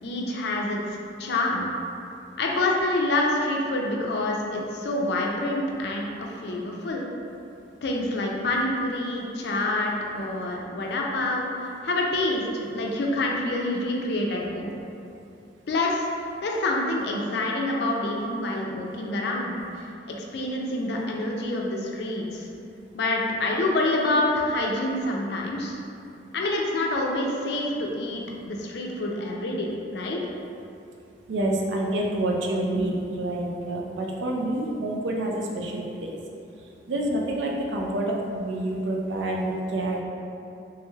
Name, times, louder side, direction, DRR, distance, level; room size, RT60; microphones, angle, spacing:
voice 1, 0.0-0.8 1.2-1.6 2.4-7.1 7.8-14.8 15.7-16.1 16.4-22.4 22.9-25.8 26.3-30.2, left 2 dB, 60° left, -1 dB, 0.4 m, -27 dB
voice 2, 31.3-36.1 36.9-40.0, right 1 dB, 80° right, -1 dB, 0.4 m, -27 dB
3.2 x 3.1 x 2.3 m, 2.7 s
head